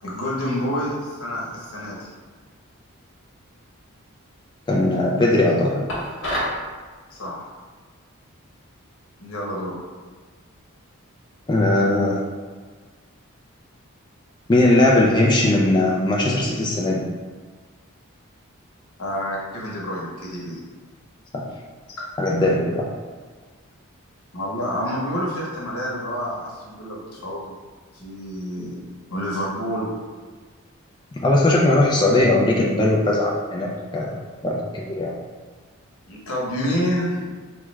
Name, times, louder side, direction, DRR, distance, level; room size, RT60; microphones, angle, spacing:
voice 1, 0.0-2.1 7.1-7.4 9.2-9.8 19.0-20.6 24.3-27.6 27.9-28.8 29.1-29.9 36.1-37.3, equal, 85° left, -4 dB, 0.9 m, -28 dB
voice 2, 4.7-5.8 11.5-12.2 14.5-17.1 21.3-21.4 22.2-22.9 31.1-34.2 34.4-35.1, left 1 dB, 20° left, -3 dB, 0.3 m, -19 dB
sound 1, 5.9-6.6, equal, 55° left, 1.0 m, -26 dB
3.3 x 2.4 x 3.1 m, 1.4 s
head